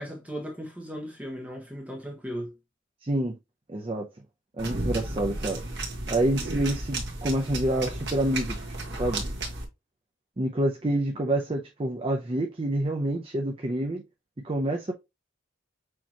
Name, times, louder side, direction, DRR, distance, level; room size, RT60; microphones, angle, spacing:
voice 1, 0.0-2.5, equal, 10° right, 1.1 m, -37 dB
voice 2, 3.0-3.4 3.7-4.1 4.6-5.6 6.1-8.6 8.9-9.2 10.4-14.0 14.4-14.9, right 1 dB, 30° right, 0.6 m, -27 dB
sound 1, 4.6-9.6, right 2 dB, 60° right, 1.5 m, -33 dB
6.3 x 2.9 x 2.9 m
head